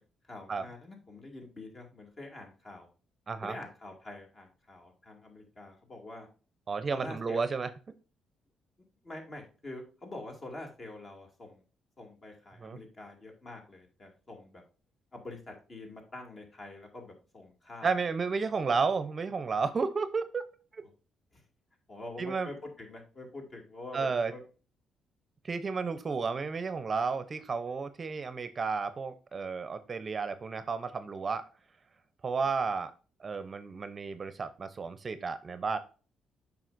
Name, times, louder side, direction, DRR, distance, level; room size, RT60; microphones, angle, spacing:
voice 1, 0.3-2.9 3.4-6.3 6.9-7.4 9.0-11.6 12.0-14.6 15.1-17.9 21.3-21.4 21.9-24.4 33.4-33.5, left 2 dB, 35° left, 2 dB, 2.4 m, -46 dB
voice 2, 6.7-7.7 12.6-12.8 17.8-20.4 20.7-20.8 22.2-22.5 23.9-24.3 25.4-31.4 32.2-32.9 33.2-35.8, right 4 dB, 35° right, 12 dB, 0.6 m, -32 dB
7.5 x 5.3 x 2.6 m, 0.36 s
cardioid pair, 90°, 0 cm